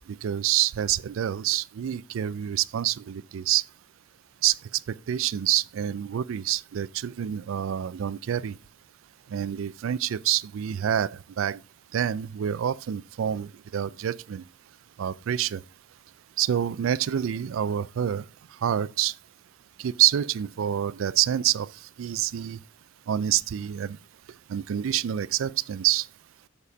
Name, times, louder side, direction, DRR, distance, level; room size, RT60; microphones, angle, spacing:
voice 1, 0.1-3.6 4.4-4.6 5.1-8.6 9.3-11.6 11.9-14.4 15.0-15.6 16.4-18.2 18.6-19.1 19.8-21.7 22.0-22.6 23.1-24.0 24.5-26.1, right 11 dB, 75° right, 0.3 m, -27 dB
7.0 x 4.2 x 5.0 m
head